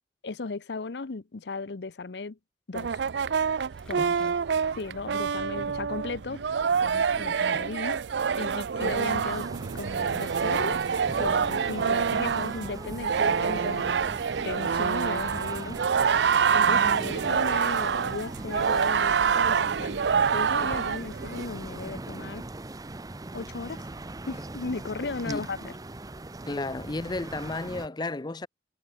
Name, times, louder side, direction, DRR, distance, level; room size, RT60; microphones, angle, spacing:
voice 1, 0.2-2.4 2.7-3.0 3.9-4.3 4.7-6.4 6.8-8.0 8.4-9.5 9.7-10.8 11.2-13.9 14.4-15.8 16.5-20.0 20.3-22.5 23.3-23.9 24.3-25.7, left 3 dB, 75° left, 0.7 m, -36 dB
Trombón Homenaje Gabriel Garcia Marquez II, 2.7-21.5, right 6 dB, 80° right, 0.5 m, -26 dB
Drawer open or close, 3.3-4.5 5.7-6.0 6.4-7.9, equal, 5° left, 2.5 m, -54 dB
sound 1, 8.8-27.9, right 2 dB, 20° right, 0.7 m, -40 dB
voice 2, 16.7-17.3 25.2-25.5 26.5-28.5, left 2 dB, 25° left, 0.6 m, -33 dB
head